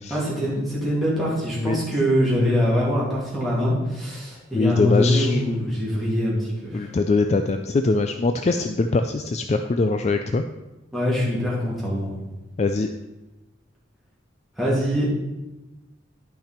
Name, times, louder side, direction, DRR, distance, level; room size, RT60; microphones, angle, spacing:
voice 1, 0.1-6.9 10.9-12.2 14.6-15.2, equal, ahead, -8 dB, 2.7 m, -23 dB
voice 2, 4.5-5.6 6.7-10.4 12.6-12.9, left 3 dB, 35° left, 7 dB, 0.3 m, -22 dB
10.5 x 5.8 x 4.4 m, 1.1 s
head